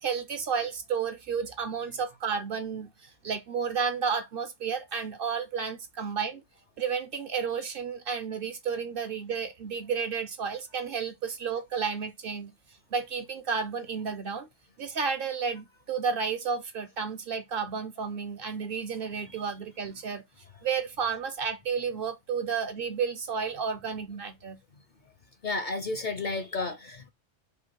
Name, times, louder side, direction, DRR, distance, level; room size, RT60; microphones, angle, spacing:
voice 1, 0.0-6.4 6.8-12.5 12.9-14.5 14.8-20.2 20.6-24.6, right 6 dB, 60° right, 0.7 m, -32 dB
voice 2, 25.4-27.1, left 3 dB, 55° left, 0.6 m, -32 dB
5.2 x 2.2 x 4.4 m
omnidirectional pair, 1.2 m